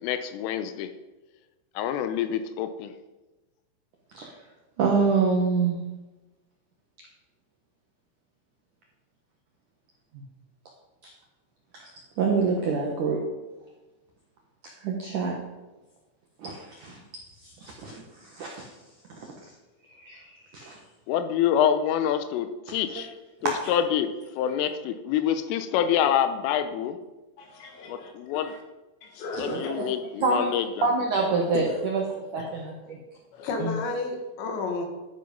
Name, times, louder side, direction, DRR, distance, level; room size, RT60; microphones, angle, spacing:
voice 1, 0.0-0.9 1.8-2.9 21.1-23.1 23.4-27.0 27.9-28.5 29.4-30.9, left 9 dB, 90° left, 9 dB, 3.4 m, -26 dB
voice 2, 4.8-5.8 11.8-11.9 12.2-13.2 14.8-15.3 16.4-17.0 17.4-18.7 20.0-20.7 23.0-23.1 23.6-23.7 29.3-29.9 30.2-30.5 30.8-33.0 33.6-33.8, right 4 dB, 70° right, 0 dB, 1.9 m, -26 dB
voice 3, 27.4-28.6 29.0-29.7 32.4-32.6 33.3-34.8, left 3 dB, 65° left, 3 dB, 3.8 m, -34 dB
13.0 x 9.6 x 5.3 m, 1.1 s
omnidirectional pair, 5.8 m